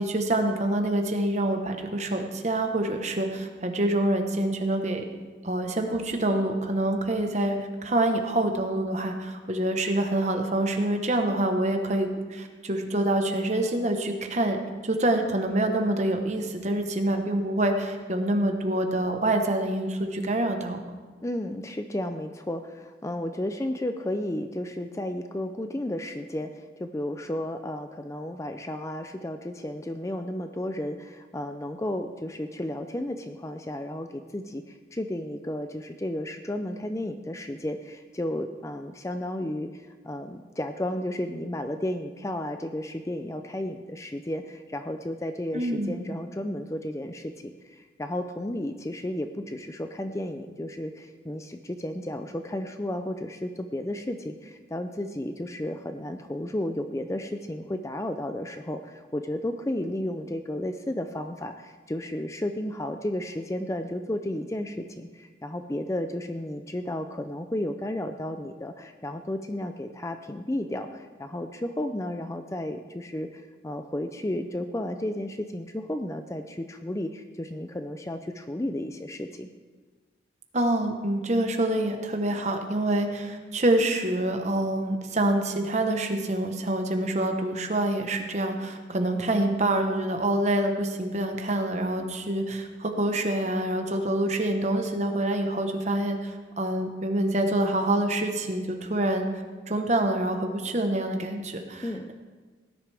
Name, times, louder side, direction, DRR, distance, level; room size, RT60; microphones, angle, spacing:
voice 1, 0.0-5.0 5.4-20.8 45.5-46.0 80.5-99.3 99.7-102.1, right 1 dB, 40° right, 5 dB, 1.2 m, -26 dB
voice 2, 21.2-79.5 101.8-102.1, left 1 dB, 15° left, 7 dB, 0.4 m, -33 dB
17.5 x 10.5 x 3.5 m, 1.4 s
head